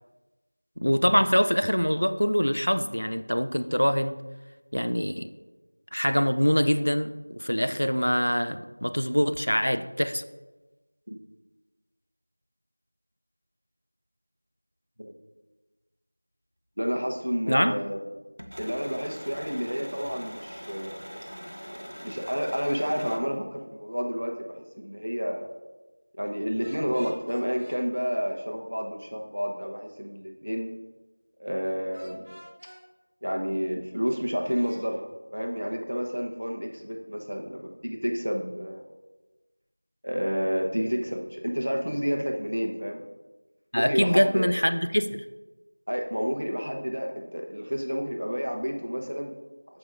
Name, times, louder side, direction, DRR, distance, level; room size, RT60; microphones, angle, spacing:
voice 1, 0.8-4.2 4.7-5.3 5.9-10.2 17.5-17.8 43.7-45.2, equal, 65° left, 10 dB, 0.4 m, -24 dB
voice 2, 16.8-18.0 18.6-21.0 21.7-25.5 26.2-30.7 31.4-32.3 33.2-35.0 35.3-38.9 40.0-43.0 43.7-44.5 45.9-49.3, equal, 50° right, 2 dB, 1.0 m, -30 dB
sound 1, 18.4-23.2, equal, 85° right, 1.0 m, -42 dB
sound 2, 26.6-27.8 31.9-32.8 34.4-34.8, equal, 10° right, 1.6 m, -47 dB
13.5 x 4.7 x 2.6 m, 1.2 s
figure-of-eight pair, 180°, 0 cm